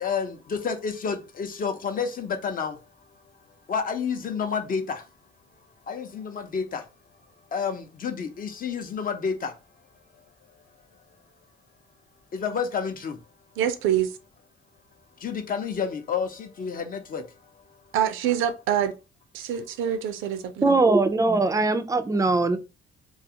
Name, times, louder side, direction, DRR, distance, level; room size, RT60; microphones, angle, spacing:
voice 1, 0.0-2.7 3.7-5.0 5.9-6.8 7.5-9.5 12.3-13.1 15.2-17.2, left 6 dB, 45° left, 0.6 m, -29 dB
voice 2, 13.6-14.2 17.9-18.9 19.3-20.8, right 10 dB, 85° right, 0.5 m, -25 dB
voice 3, 20.6-22.6, right 3 dB, 15° right, 0.3 m, -21 dB
2.4 x 2.3 x 2.7 m
cardioid pair, 90°, 20 cm